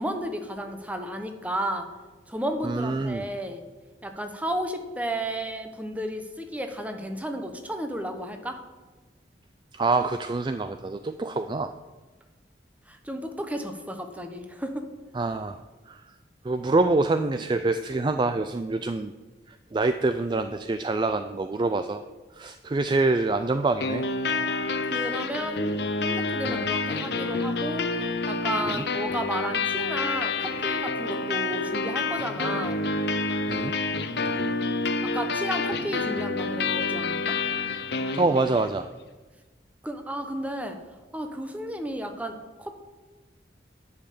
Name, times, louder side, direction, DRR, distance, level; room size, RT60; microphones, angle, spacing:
voice 1, 0.0-1.9 2.3-3.6 4.0-8.6 12.9-14.9 24.8-27.9 28.3-32.8 35.0-37.4 39.8-40.8 41.1-42.8, right 1 dB, 10° right, 5 dB, 0.9 m, -33 dB
voice 2, 2.6-3.3 9.7-11.7 15.1-16.0 16.4-19.1 19.5-22.0 22.3-24.0 26.5-26.7 28.7-28.8 33.5-33.8 38.1-38.9, right 3 dB, 25° right, 9 dB, 0.3 m, -26 dB
sound 1, 23.8-38.8, left 3 dB, 60° left, 0.8 m, -28 dB
10.0 x 5.5 x 8.4 m, 1.2 s
head